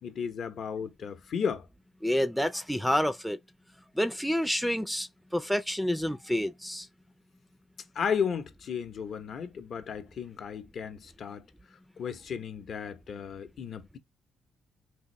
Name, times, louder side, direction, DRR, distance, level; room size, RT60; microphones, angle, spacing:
voice 1, 0.0-1.7 7.9-11.4 12.0-14.0, left 7 dB, 60° left, 0.6 m, -34 dB
voice 2, 2.0-3.4 4.0-6.9, equal, ahead, 0.4 m, -28 dB
3.4 x 2.6 x 2.9 m
cardioid pair, 90°, 0 cm